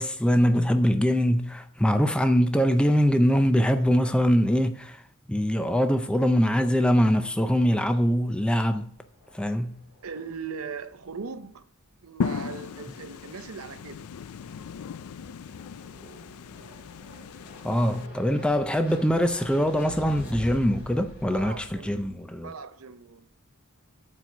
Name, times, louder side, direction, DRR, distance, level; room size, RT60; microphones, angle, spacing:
voice 1, 0.0-5.0 5.3-8.9 9.3-9.8 17.6-22.5, equal, 5° left, 0.4 m, -23 dB
sound 1, 8.4-10.8 11.0-11.5 13.6-22.1, equal, 55° left, 3.5 m, -45 dB
voice 2, 10.0-11.7 12.0-14.1 21.3-22.0 22.4-23.3, right 5 dB, 70° right, 0.7 m, -39 dB
sound 2, 12.2-18.1, left 6 dB, 80° left, 0.4 m, -36 dB
12.0 x 4.5 x 5.8 m
head